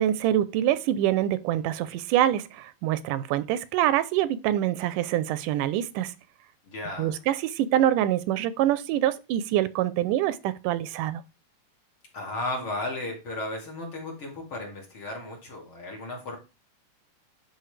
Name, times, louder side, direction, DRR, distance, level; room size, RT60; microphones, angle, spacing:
voice 1, 0.0-6.1 7.0-11.2, right 12 dB, 90° right, 2.2 m, -25 dB
voice 2, 6.6-7.2 12.1-16.4, left 2 dB, 45° left, 3.2 m, -34 dB
11.5 x 4.5 x 3.3 m
omnidirectional pair, 3.6 m